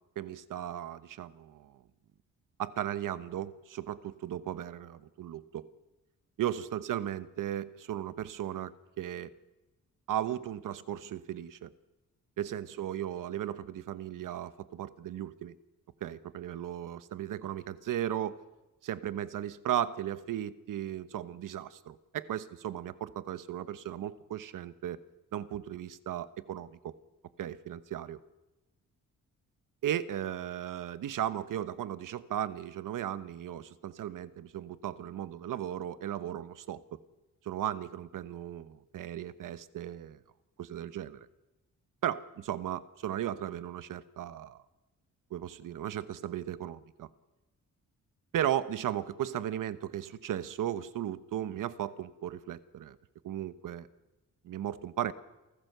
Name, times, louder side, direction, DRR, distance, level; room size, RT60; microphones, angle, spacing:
voice 1, 0.2-1.8 2.6-5.7 6.4-9.3 10.1-11.7 12.4-15.5 16.0-18.4 18.8-25.0 25.3-26.9 27.4-28.2 29.8-37.0 37.4-40.2 40.6-41.3 42.0-44.6 45.3-47.1 48.3-53.0 53.2-53.9 54.4-55.1, right 11 dB, 80° right, 14 dB, 1.1 m, -36 dB
29.0 x 14.0 x 6.8 m, 1.1 s
cardioid pair, 110°, 32 cm